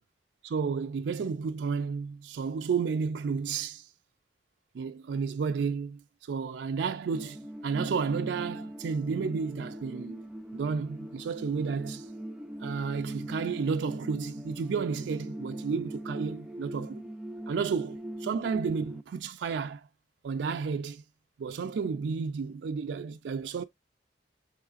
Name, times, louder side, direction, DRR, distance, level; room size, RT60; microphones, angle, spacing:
voice 1, 0.4-3.9 4.7-10.2 10.5-12.1 12.6-17.0 17.5-19.9 20.2-21.0 21.4-23.6, right 5 dB, 75° right, 0.4 m, -32 dB
sound 1, 7.1-19.0, right 1 dB, 5° right, 0.3 m, -41 dB
5.7 x 3.1 x 2.4 m
head